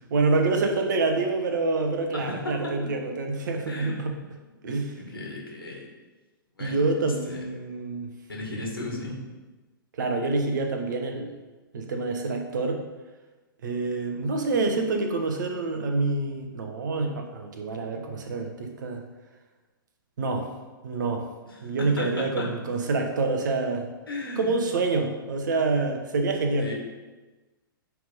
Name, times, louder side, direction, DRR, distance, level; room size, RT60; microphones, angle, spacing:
voice 1, 0.1-4.1 4.6-5.0 6.6-8.1 9.9-11.3 11.7-12.8 13.6-19.0 20.2-20.5 20.8-21.3 21.6-23.9 24.4-26.7, right 3 dB, 55° right, 4 dB, 1.2 m, -27 dB
voice 2, 2.1-2.9 3.7-4.1 5.0-5.9 6.6-6.8 7.2-7.4 8.3-9.2 21.5-22.8 24.1-24.5 26.6-26.7, left 2 dB, 80° left, -1 dB, 2.1 m, -35 dB
9.2 x 3.6 x 5.4 m, 1.2 s
figure-of-eight pair, 110°, 12 cm